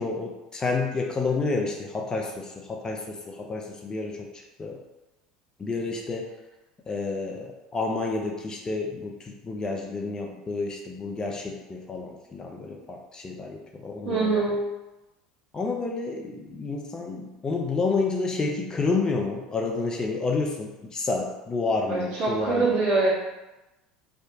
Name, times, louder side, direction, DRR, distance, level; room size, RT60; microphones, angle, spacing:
voice 1, 0.0-4.3 4.6-4.8 5.6-6.3 6.9-14.4 15.5-22.8, left 3 dB, 25° left, 1 dB, 0.4 m, -30 dB
voice 2, 14.0-14.6 21.9-23.1, right 3 dB, 60° right, -9 dB, 1.5 m, -24 dB
2.8 x 2.1 x 2.7 m, 1.0 s
hypercardioid pair, 80°, 3 cm